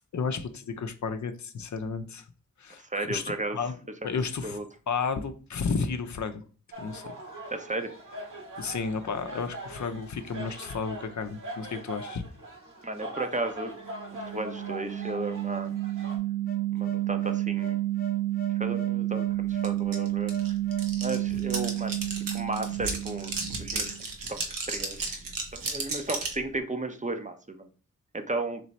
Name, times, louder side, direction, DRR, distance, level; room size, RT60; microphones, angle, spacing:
voice 1, 0.1-2.2 2.6-3.2 3.5-3.8 4.0-4.6 4.9-6.4 6.8-7.1 8.6-12.2, left 5 dB, 60° left, 0.6 m, -32 dB
voice 2, 2.8-3.6 4.4-4.6 7.5-7.9 12.8-13.7 14.3-15.7 16.7-17.8 18.6-20.3 21.0-22.0 22.3-23.9 24.3-24.4 24.7-25.2 25.5-27.7 28.1-28.6, right 2 dB, 25° right, 0.6 m, -34 dB
sound 1, 6.7-16.2, right 1 dB, 65° right, 1.5 m, -42 dB
sound 2, 13.8-23.9, right 13 dB, 25° left, 0.9 m, -30 dB
sound 3, 19.6-19.7 19.9-26.4, right 3 dB, 85° right, 0.8 m, -34 dB
3.3 x 3.0 x 4.0 m
cardioid pair, 45°, 33 cm